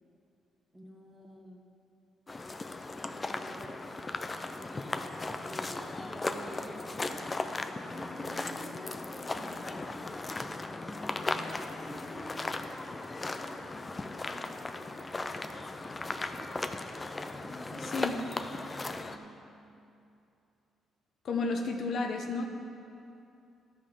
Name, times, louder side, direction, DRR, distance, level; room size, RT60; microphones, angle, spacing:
voice 1, 0.7-1.6 3.1-3.9 4.3-16.6 17.3-18.1 18.7-19.5, right 1 dB, 10° right, 1 dB, 1.2 m, -50 dB
sound 1, 2.3-19.2, left 2 dB, 25° left, 0.5 m, -37 dB
voice 2, 21.2-22.4, left 3 dB, 60° left, 3 dB, 0.9 m, -31 dB
13.0 x 5.6 x 4.9 m, 2.7 s
cardioid pair, 90°, 0 cm